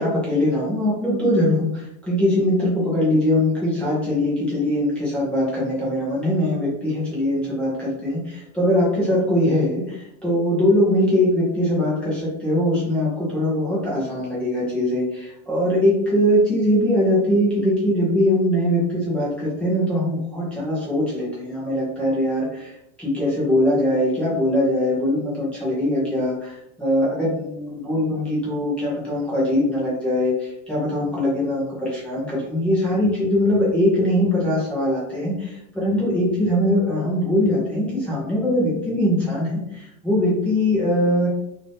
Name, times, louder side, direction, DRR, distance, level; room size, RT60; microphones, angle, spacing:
voice 1, 0.0-22.7 23.0-41.3, left 1 dB, 5° left, -8 dB, 0.7 m, -21 dB
3.4 x 2.7 x 3.3 m, 0.81 s
supercardioid pair, 170°, 39 cm